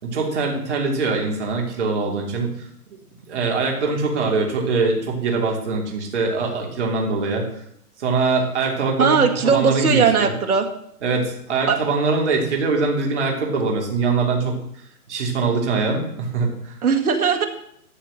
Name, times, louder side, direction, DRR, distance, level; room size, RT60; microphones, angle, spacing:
voice 1, 0.0-2.5 3.3-7.4 8.0-10.3 11.0-14.6 15.1-16.7, right 4 dB, 45° right, 0 dB, 3.2 m, -23 dB
voice 2, 9.0-10.7 11.7-11.8 16.8-17.5, right 6 dB, 65° right, 5 dB, 2.0 m, -18 dB
13.0 x 4.7 x 7.6 m, 0.72 s
hypercardioid pair, 160°, 47 cm